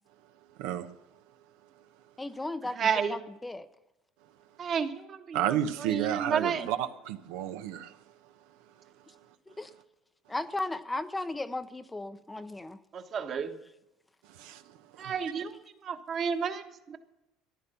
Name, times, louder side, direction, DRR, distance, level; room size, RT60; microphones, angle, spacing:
voice 1, 2.2-3.7 9.6-9.7 10.3-12.8, left 2 dB, 10° left, 11 dB, 0.6 m, -36 dB
voice 2, 2.8-3.2 4.6-6.7 12.9-13.5 15.0-15.6 15.8-17.0, right 7 dB, 40° right, 8 dB, 1.4 m, -31 dB
voice 3, 5.3-7.9 14.4-14.6 15.0-15.1, right 10 dB, 85° right, 8 dB, 1.0 m, -31 dB
14.0 x 11.0 x 6.9 m, 0.94 s
cardioid pair, 125°, 0 cm